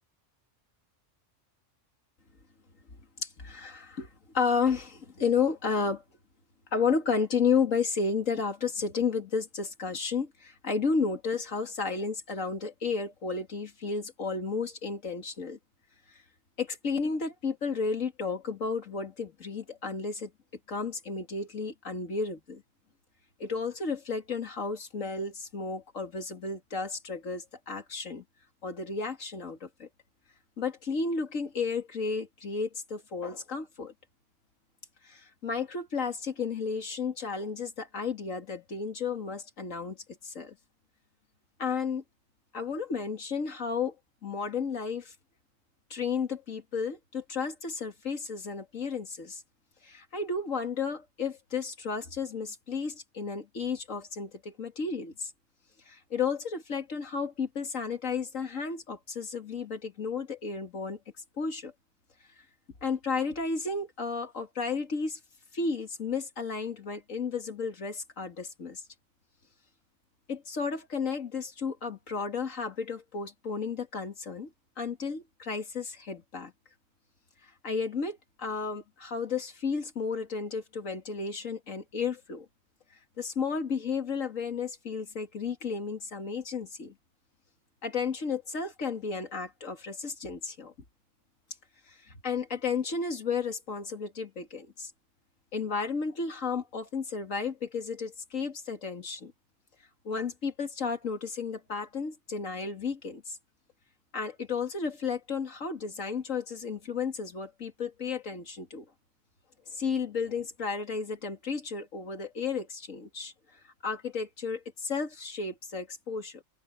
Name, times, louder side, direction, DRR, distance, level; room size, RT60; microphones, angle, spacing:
voice 1, 3.2-6.0 6.7-15.6 16.1-16.2 16.6-20.3 20.7-22.6 23.4-28.2 28.6-29.9 30.6-33.9 35.0-40.0 40.2-40.6 41.6-42.0 42.5-44.0 44.2-45.1 45.9-49.4 49.8-55.3 55.9-61.0 61.4-61.7 62.8-65.2 65.5-68.8 70.3-76.5 77.4-82.5 83.2-86.9 87.8-90.7 91.9-94.9 95.5-99.3 100.0-103.4 104.1-108.9 109.7-116.4, left 5 dB, 90° left, 2.7 m, -33 dB
open air
omnidirectional pair, 1.3 m